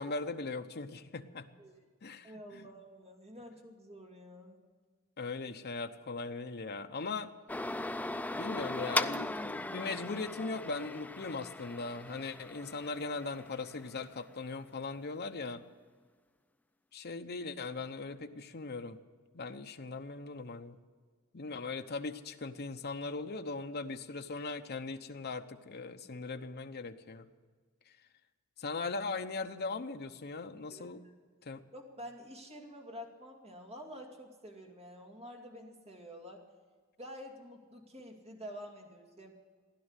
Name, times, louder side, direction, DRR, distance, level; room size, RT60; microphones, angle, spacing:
voice 1, 0.0-1.5 2.0-2.7 5.2-7.3 8.3-15.6 16.9-19.0 19.3-20.8 21.3-27.3 28.6-31.0 31.4-31.6, left 3 dB, 50° left, 7 dB, 0.9 m, -39 dB
voice 2, 2.2-4.6 30.7-30.9 31.7-36.4 37.0-39.3, equal, 30° right, 1 dB, 2.5 m, -48 dB
sound 1, 7.5-14.2, left 2 dB, 5° left, 0.4 m, -38 dB
16.0 x 11.0 x 8.2 m, 1.5 s
head